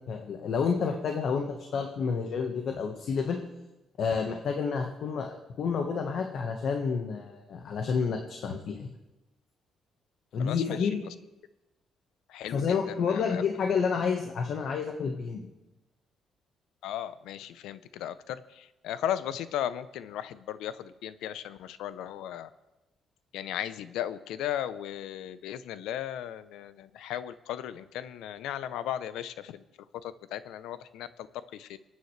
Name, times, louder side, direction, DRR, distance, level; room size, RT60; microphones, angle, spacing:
voice 1, 0.1-3.4 4.0-8.9 10.3-11.0 12.5-15.5, left 5 dB, 65° left, 3 dB, 1.3 m, -29 dB
voice 2, 10.4-10.9 12.3-13.4 16.8-22.5 23.3-29.6 30.0-31.1 31.5-31.8, left 11 dB, 90° left, 14 dB, 0.6 m, -36 dB
26.5 x 9.3 x 3.3 m, 1.0 s
cardioid pair, 90°, 0 cm